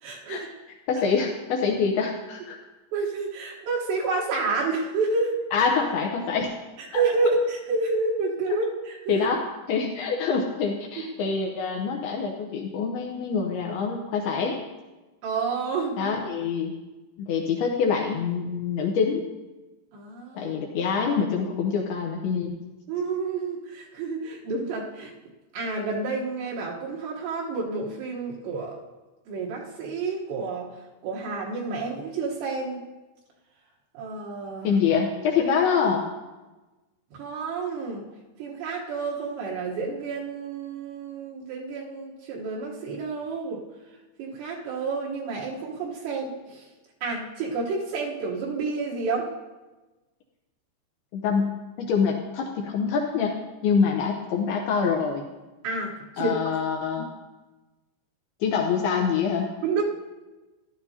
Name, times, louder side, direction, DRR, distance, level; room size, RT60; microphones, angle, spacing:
voice 1, 0.0-0.5 2.9-5.4 6.8-9.3 15.2-16.1 19.9-20.5 22.9-25.1 25.5-28.8 29.3-30.7 31.0-32.8 33.9-34.7 37.1-38.0 38.4-43.6 44.2-46.6 47.0-49.3 55.6-56.6 59.6-59.8, right 4 dB, 70° right, -4 dB, 3.3 m, -29 dB
voice 2, 0.9-2.6 5.5-6.5 6.9-7.0 8.5-8.6 9.1-9.4 9.7-14.6 16.0-16.7 17.2-19.2 20.3-22.5 34.6-36.1 51.1-53.4 53.6-55.2 56.2-57.1 58.4-59.5, left 6 dB, 75° left, 0 dB, 2.4 m, -25 dB
14.5 x 11.5 x 2.8 m, 1.1 s
omnidirectional pair, 5.3 m